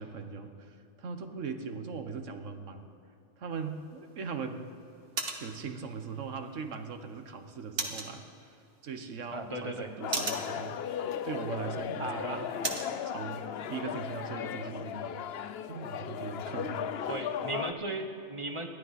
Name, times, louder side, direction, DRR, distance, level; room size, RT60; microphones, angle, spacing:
voice 1, 0.0-2.9 3.4-4.7 5.4-8.6 8.8-12.7 13.1-16.9, right 5 dB, 80° right, 7 dB, 1.5 m, -40 dB
sound 1, 3.5-13.0, right 3 dB, 50° right, 1.7 m, -41 dB
voice 2, 9.3-9.9 12.0-12.5 17.1-18.7, right 2 dB, 25° right, 5 dB, 1.3 m, -36 dB
sound 2, 10.0-17.7, left 8 dB, 60° left, 0.8 m, -36 dB
28.5 x 12.0 x 4.2 m, 2.8 s
omnidirectional pair, 1.3 m